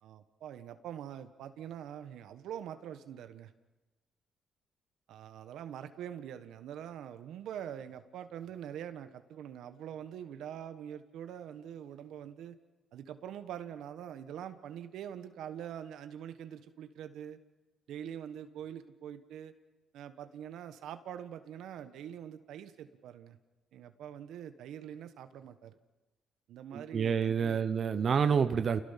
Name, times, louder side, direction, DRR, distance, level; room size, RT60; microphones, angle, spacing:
voice 1, 0.0-3.5 5.1-12.6 12.9-17.4 17.9-19.5 19.9-23.4 23.7-25.8 26.5-27.7, right 9 dB, 80° right, 10 dB, 1.3 m, -44 dB
voice 2, 26.7-28.8, right 6 dB, 50° right, 10 dB, 0.8 m, -28 dB
29.5 x 17.5 x 5.8 m, 1.1 s
cardioid pair, 90°, 0 cm